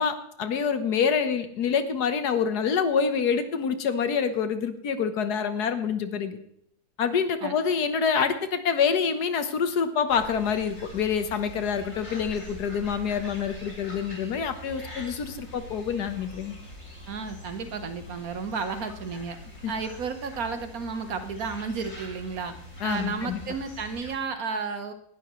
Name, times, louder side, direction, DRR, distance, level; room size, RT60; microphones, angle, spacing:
voice 1, 0.0-6.4 7.0-16.5 19.6-19.7 22.8-23.4, left 6 dB, 75° left, 10 dB, 1.6 m, -26 dB
sound 1, 10.1-24.2, left 1 dB, 50° left, 5.0 m, -44 dB
voice 2, 17.1-19.4 19.7-22.5 22.8-24.9, right 5 dB, 65° right, 9 dB, 1.5 m, -32 dB
18.5 x 12.0 x 3.1 m, 0.73 s
omnidirectional pair, 1.7 m